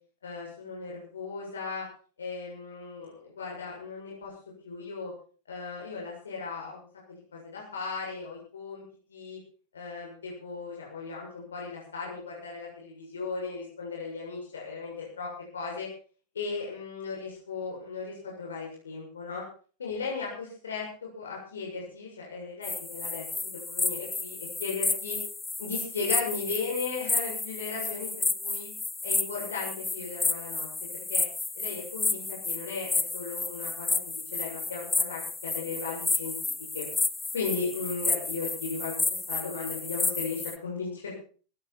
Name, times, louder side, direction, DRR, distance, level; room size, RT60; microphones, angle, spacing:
voice 1, 0.2-1.9 2.2-4.3 4.6-5.1 5.5-8.8 9.1-9.4 9.7-15.9 16.3-19.4 19.8-20.9 21.2-25.2 25.6-28.7 29.0-30.7 30.9-31.2 31.5-34.0 34.3-36.9 37.3-41.2, left 4 dB, 70° left, -3 dB, 7.1 m, -36 dB
sound 1, 22.6-40.6, left 3 dB, 10° left, 1.3 m, -31 dB
18.5 x 15.5 x 4.5 m, 0.41 s
figure-of-eight pair, 90°, 0 cm